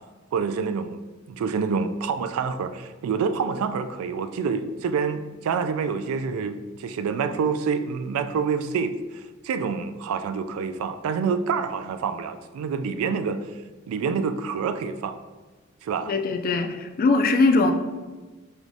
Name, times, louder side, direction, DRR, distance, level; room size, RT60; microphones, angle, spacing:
voice 1, 0.3-1.0 1.3-13.4 13.9-15.2 15.8-16.1, right 5 dB, 85° right, 13 dB, 0.3 m, -27 dB
voice 2, 16.1-17.7, left 3 dB, 45° left, 6 dB, 0.3 m, -21 dB
4.8 x 3.0 x 2.6 m, 1.3 s
head